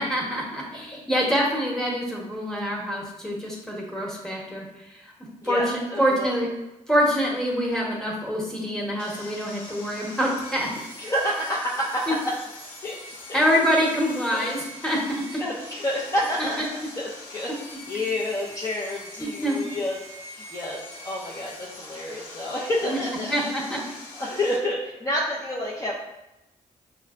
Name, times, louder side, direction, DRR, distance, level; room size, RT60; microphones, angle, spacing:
voice 1, 0.0-4.6 5.4-6.5 6.9-10.7 12.1-12.2 13.3-15.2 17.9-18.0 19.2-19.6 22.8-23.0 23.3-23.8, equal, 5° left, -4 dB, 1.2 m, -25 dB
voice 2, 5.4-6.3 11.0-12.1 12.8-13.0 13.3-13.4 14.3-14.5 15.4-16.6 17.0-20.0 20.2-23.3 24.2-25.9, left 1 dB, 20° left, -6 dB, 0.7 m, -29 dB
Sawing, 9.0-24.6, left 2 dB, 85° left, 0.8 m, -42 dB
5.4 x 2.2 x 2.4 m, 0.92 s
cardioid pair, 65°, 14 cm